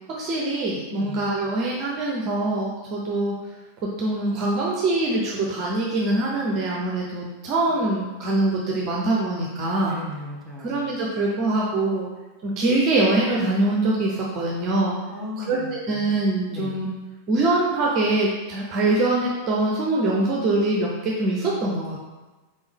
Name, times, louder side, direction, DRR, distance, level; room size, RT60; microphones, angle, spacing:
voice 1, 0.2-3.3 4.0-10.0 10.6-12.1 12.4-15.0 15.5-15.6 15.9-16.9 17.3-22.0, right 2 dB, 35° right, -3 dB, 0.7 m, -23 dB
voice 2, 0.9-1.2 7.7-7.8 9.9-10.9 15.1-16.1 16.5-16.8, left 2 dB, 5° right, -5 dB, 1.3 m, -36 dB
4.2 x 3.5 x 3.5 m, 1.2 s
figure-of-eight pair, 90°, 0 cm